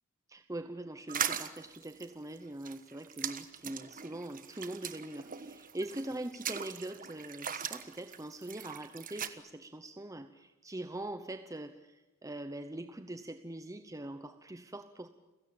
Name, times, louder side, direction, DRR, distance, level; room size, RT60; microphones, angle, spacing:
voice 1, 0.3-15.1, right 1 dB, 15° right, 9 dB, 0.8 m, -42 dB
sound 1, 1.1-9.3, right 8 dB, 40° right, 1.3 m, -40 dB
29.5 x 16.5 x 8.8 m, 1.1 s
head